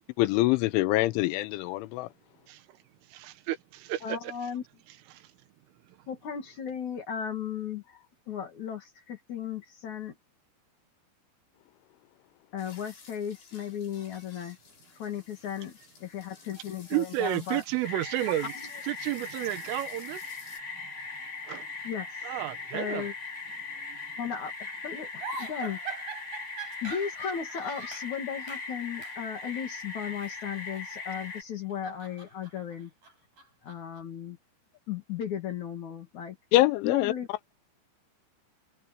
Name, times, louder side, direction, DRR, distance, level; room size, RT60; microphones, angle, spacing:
voice 1, 0.2-2.1 36.5-37.1, left 17 dB, 85° left, 3.1 m, -24 dB
voice 2, 2.5-4.3 5.1-5.3 5.9-6.1 16.9-18.5 18.9-21.7 22.2-23.1 23.7-24.2, right 14 dB, 85° right, 3.9 m, -33 dB
voice 3, 4.0-4.6 6.1-10.2 12.5-14.6 14.9-17.6 21.8-22.2 22.7-23.1 24.2-25.8 26.8-32.9 33.6-34.4 34.9-36.4 36.8-37.3, left 8 dB, 50° left, 2.7 m, -36 dB
sound 1, 12.6-20.6, left 5 dB, 65° left, 10.5 m, -54 dB
sound 2, 17.8-31.4, left 4 dB, 35° left, 1.2 m, -40 dB
sound 3, 25.2-28.1 28.5-28.7 29.0-29.2 30.1-31.3 31.6-34.0, right 4 dB, 45° right, 9.4 m, -43 dB
omnidirectional pair, 5.6 m